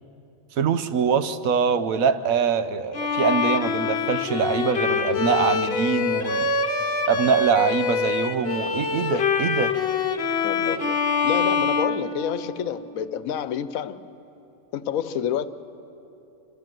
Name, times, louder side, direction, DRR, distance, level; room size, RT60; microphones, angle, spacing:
voice 1, 0.6-6.5 7.1-9.7, right 6 dB, 80° right, 1.2 m, -23 dB
Bowed string instrument, 2.9-12.8, left 4 dB, 50° left, 1.0 m, -25 dB
voice 2, 10.4-14.0 14.7-15.5, left 9 dB, 80° left, 1.1 m, -29 dB
26.5 x 13.5 x 7.5 m
omnidirectional pair, 1.4 m